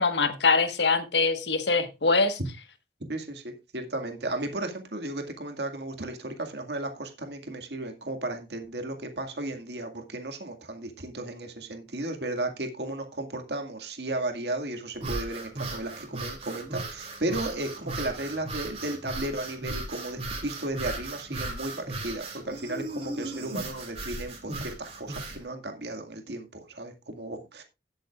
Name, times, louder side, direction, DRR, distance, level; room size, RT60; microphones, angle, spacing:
voice 1, 0.0-2.4, left 4 dB, 80° left, 1.4 m, -23 dB
voice 2, 3.1-27.6, right 2 dB, 70° right, 2.0 m, -34 dB
sound 1, 14.9-25.4, right 2 dB, 35° right, 2.9 m, -36 dB
17.5 x 7.9 x 2.4 m
head